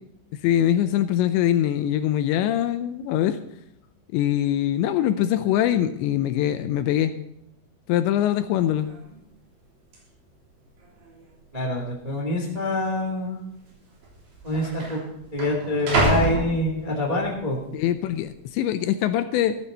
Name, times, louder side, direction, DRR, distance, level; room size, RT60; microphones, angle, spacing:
voice 1, 0.4-3.4 4.1-7.1 7.9-8.9 17.7-19.6, left 11 dB, 80° left, 10 dB, 2.7 m, -23 dB
sound 1, 8.5-8.6 8.8-9.2 9.9-10.0 10.8-11.3 11.6-11.7 12.5-12.7 13.7-13.8 14.0-17.3 17.7-18.2, right 2 dB, 50° right, 4.9 m, -28 dB
voice 2, 11.5-13.4 14.4-15.0 15.3-17.6, left 1 dB, 15° right, -1 dB, 1.6 m, -26 dB
13.5 x 13.5 x 4.1 m, 0.80 s
omnidirectional pair, 5.5 m